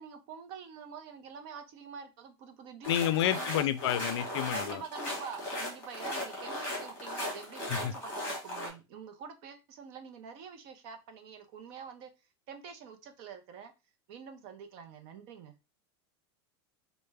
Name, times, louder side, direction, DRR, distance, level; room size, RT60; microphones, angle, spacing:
voice 1, 0.0-3.6 4.5-12.1 12.5-13.7 14.1-15.5, right 6 dB, 40° right, 0.5 m, -46 dB
voice 2, 2.8-4.8 7.7-8.0, left 11 dB, 70° left, 0.4 m, -30 dB
sound 1, 2.8-8.7, left 1 dB, 15° left, 1.5 m, -37 dB
3.3 x 2.1 x 3.2 m
supercardioid pair, 170°, 14 cm